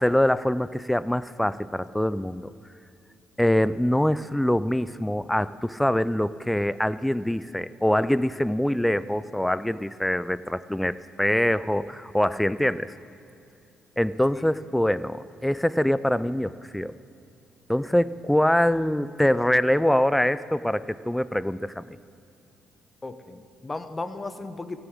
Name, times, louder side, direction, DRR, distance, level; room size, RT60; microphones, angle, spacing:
voice 1, 0.0-2.5 3.4-12.9 14.0-16.9 17.7-22.0, left 1 dB, 5° left, 16 dB, 0.4 m, -24 dB
voice 2, 23.0-24.8, left 3 dB, 25° left, 10 dB, 0.9 m, -35 dB
14.5 x 7.2 x 8.6 m, 2.5 s
supercardioid pair, 60°, 0 cm